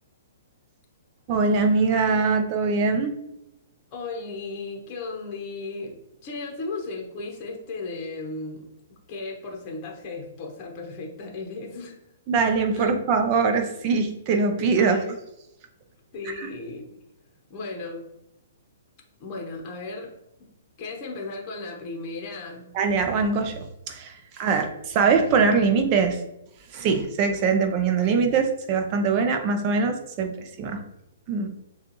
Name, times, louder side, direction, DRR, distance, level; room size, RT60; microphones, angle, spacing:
voice 1, 1.3-3.2 12.3-15.0 16.4-16.5 22.7-26.2 26.7-30.8 31.3-31.5, right 4 dB, 30° right, 5 dB, 0.6 m, -22 dB
voice 2, 3.9-6.0 6.2-12.0 12.7-12.9 14.8-15.2 16.1-16.9 17.5-18.1 19.2-20.1 20.8-22.8, left 3 dB, 30° left, 0 dB, 1.0 m, -35 dB
6.5 x 2.4 x 3.0 m, 0.84 s
hypercardioid pair, 155°, 0 cm